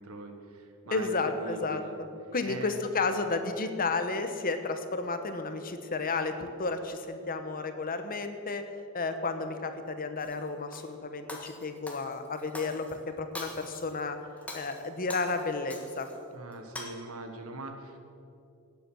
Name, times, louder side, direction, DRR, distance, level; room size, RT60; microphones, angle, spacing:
voice 1, 0.0-2.0 2.4-2.8 16.3-18.0, right 2 dB, 75° right, 5 dB, 1.5 m, -42 dB
voice 2, 0.9-8.6 8.9-14.2 14.5-16.1, left 3 dB, 40° left, 8 dB, 1.0 m, -32 dB
Shatter, 10.2-10.9 11.3-12.9 13.3-14.0 14.4-16.2 16.5-16.8, left 1 dB, 5° left, 1.6 m, -43 dB
17.0 x 8.1 x 6.3 m, 2.6 s
head